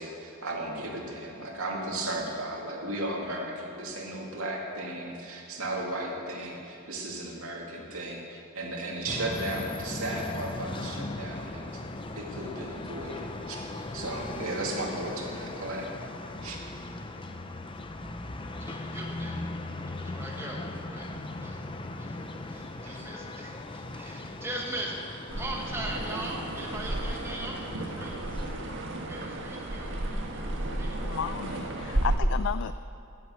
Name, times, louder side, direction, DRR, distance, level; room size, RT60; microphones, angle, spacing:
voice 1, 0.0-11.8 12.1-15.9 16.4-16.6 22.8-23.0, right 1 dB, 80° right, -1 dB, 2.4 m, -35 dB
sound 1, 9.1-28.6, left 2 dB, 25° left, 0.6 m, -39 dB
voice 2, 18.6-19.5 19.8-21.1 21.4-21.6 22.0-22.1 22.5-28.1 29.0-31.2, right 1 dB, 10° right, -2 dB, 1.5 m, -40 dB
sound 2, 25.3-32.2, right 1 dB, 60° right, 1.6 m, -33 dB
voice 3, 31.0-32.7, left 8 dB, 60° left, 13 dB, 0.3 m, -33 dB
18.0 x 7.9 x 6.7 m, 2.6 s
head